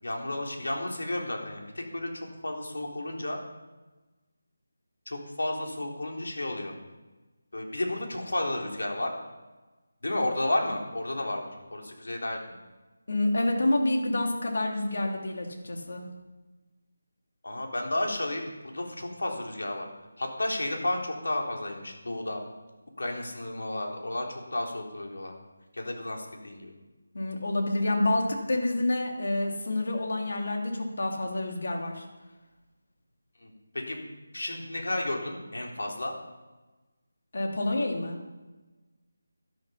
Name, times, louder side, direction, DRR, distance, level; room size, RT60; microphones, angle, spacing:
voice 1, 0.0-2.1 2.4-3.4 5.1-6.8 7.5-9.1 10.0-12.4 17.4-19.9 20.2-22.4 23.0-25.3 25.7-26.8 33.4-34.0 34.3-36.1, left 1 dB, 85° left, 0 dB, 3.7 m, -32 dB
voice 2, 13.1-16.0 27.1-32.1 37.3-38.2, left 1 dB, 60° left, 2 dB, 2.8 m, -28 dB
12.0 x 12.0 x 5.7 m, 1.2 s
figure-of-eight pair, 175°, 0 cm